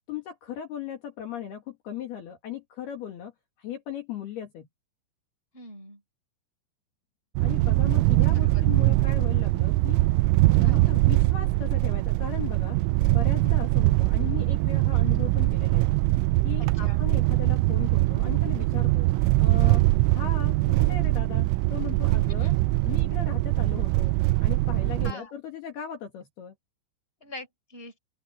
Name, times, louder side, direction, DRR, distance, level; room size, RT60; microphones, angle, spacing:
voice 1, 0.1-3.3 3.6-4.7 7.4-10.0 10.5-15.9 16.4-19.1 19.4-19.8 20.1-22.5 22.8-24.2 24.4-26.6, left 10 dB, 60° left, 4.0 m, -37 dB
voice 2, 5.5-6.0 8.0-9.0 10.6-10.9 16.6-17.1 22.4-22.6 25.0-25.3 27.2-27.9, left 1 dB, 10° left, 5.5 m, -44 dB
sound 1, 7.4-25.1, right 20 dB, 90° right, 3.1 m, -22 dB
open air
omnidirectional pair, 5.6 m